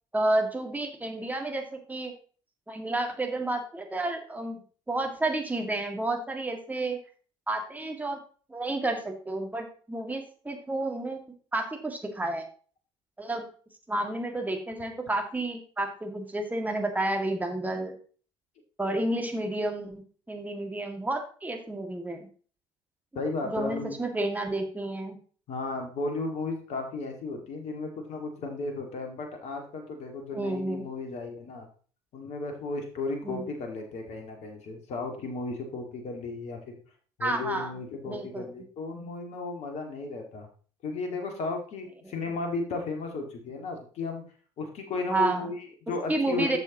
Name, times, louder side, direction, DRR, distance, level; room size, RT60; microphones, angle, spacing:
voice 1, 0.1-2.1 2.7-4.6 4.9-7.0 7.5-8.2 8.5-11.2 11.5-12.4 13.2-13.4 13.9-17.9 18.8-22.3 23.4-25.2 30.3-30.9 33.2-33.5 37.2-37.7 38.1-38.5 45.1-45.5 46.1-46.6, right 2 dB, 10° right, 3 dB, 2.0 m, -30 dB
voice 2, 23.1-24.0 25.5-31.7 32.1-36.8 37.2-40.5 40.8-44.2 44.6-46.6, left 3 dB, 50° left, 4 dB, 2.0 m, -34 dB
12.0 x 6.9 x 3.0 m, 0.42 s
figure-of-eight pair, 60°, 14 cm